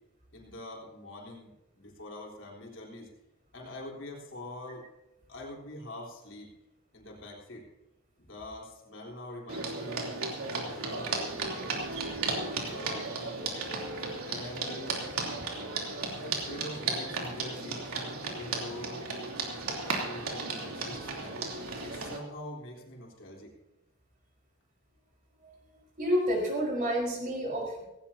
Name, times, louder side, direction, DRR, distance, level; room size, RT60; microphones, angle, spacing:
voice 1, 0.3-3.1 3.5-4.8 5.3-6.5 6.9-7.7 8.2-11.7 12.3-13.4 14.2-15.0 16.2-17.9 18.2-19.1 19.8-21.4 21.8-23.5, left 1 dB, 60° left, -2 dB, 3.8 m, -44 dB
sound 1, 9.5-22.2, right 3 dB, 85° right, 3.2 m, -35 dB
voice 2, 26.0-27.8, equal, 40° right, -2 dB, 4.8 m, -29 dB
17.5 x 17.5 x 2.8 m, 0.98 s
head